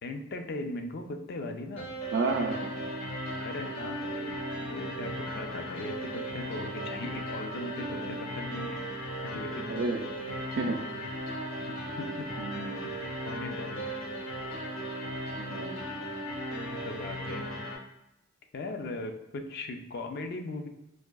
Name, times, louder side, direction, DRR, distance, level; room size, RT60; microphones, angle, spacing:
voice 1, 0.0-1.9 3.4-4.4 4.7-8.8 9.2-9.7 10.3-10.4 10.9-11.0 11.6-12.3 12.8-13.9 16.6-17.5 18.5-20.7, left 2 dB, 50° left, 6 dB, 0.4 m, -39 dB
sound 1, 1.8-17.8, equal, 80° left, 1.3 m, -36 dB
voice 2, 2.1-2.7 7.9-8.1 9.7-10.1 10.6-10.8 12.4-12.9 15.4-15.9, right 3 dB, 55° right, 5 dB, 0.4 m, -31 dB
4.8 x 2.5 x 2.2 m, 0.92 s
head